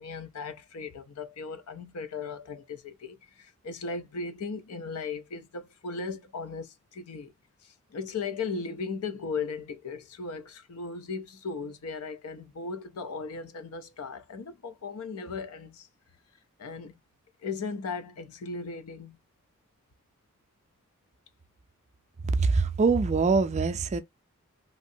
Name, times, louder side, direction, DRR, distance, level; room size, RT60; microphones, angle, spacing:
voice 1, 0.0-7.3 7.6-15.9 16.6-17.0 17.4-19.2, left 4 dB, 90° left, 0.5 m, -37 dB
voice 2, 22.2-24.0, right 4 dB, 30° right, 0.3 m, -24 dB
3.0 x 2.6 x 2.6 m
head